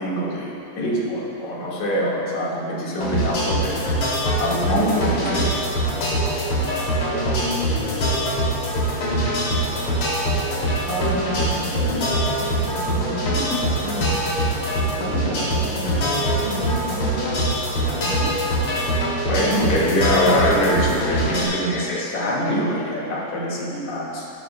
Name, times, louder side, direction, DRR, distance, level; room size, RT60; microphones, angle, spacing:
voice 1, 0.0-3.8 4.4-5.4 19.2-24.3, equal, 80° left, -5 dB, 3.3 m, -23 dB
sound 1, 3.0-21.4, equal, 55° left, 3.5 m, -23 dB
voice 2, 7.1-8.2 9.0-9.7 10.9-14.2 14.8-17.4 17.8-18.3, equal, 90° right, -4 dB, 2.9 m, -31 dB
14.0 x 13.5 x 2.2 m, 2.7 s
omnidirectional pair, 3.4 m